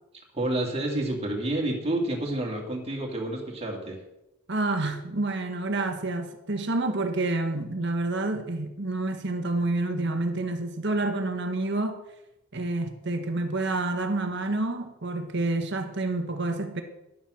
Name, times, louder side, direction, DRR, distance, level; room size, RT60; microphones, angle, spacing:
voice 1, 0.3-4.0, right 1 dB, 30° right, 2.2 m, -29 dB
voice 2, 4.5-12.0 12.5-16.8, right 2 dB, 55° right, 1.3 m, -28 dB
11.0 x 7.4 x 6.3 m
head